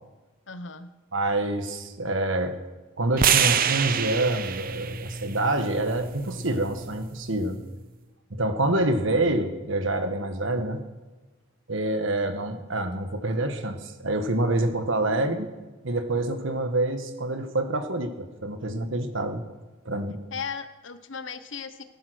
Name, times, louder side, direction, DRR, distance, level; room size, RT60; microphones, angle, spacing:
voice 1, 0.5-0.9 20.3-21.8, left 5 dB, 60° left, 11 dB, 0.9 m, -36 dB
voice 2, 1.1-2.6 3.0-7.6 8.3-10.8 11.7-15.5 15.8-19.4 19.8-20.2, right 2 dB, 65° right, 8 dB, 1.4 m, -27 dB
sound 1, 3.2-7.4, right 8 dB, 45° right, 0.7 m, -27 dB
16.5 x 10.5 x 6.3 m, 1.2 s
head